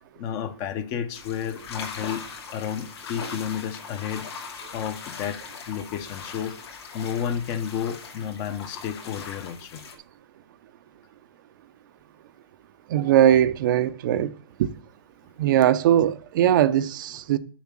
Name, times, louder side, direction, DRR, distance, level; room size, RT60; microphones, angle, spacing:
voice 1, 0.2-2.2 2.5-4.3 4.7-6.6 6.9-9.8, left 8 dB, 25° left, 0.7 m, -31 dB
sound 1, 1.1-10.0, left 5 dB, 70° left, 2.5 m, -40 dB
voice 2, 12.9-14.3 14.6-14.7 15.4-17.4, right 11 dB, 50° right, 0.5 m, -20 dB
7.2 x 6.3 x 7.4 m
supercardioid pair, 165°, 14 cm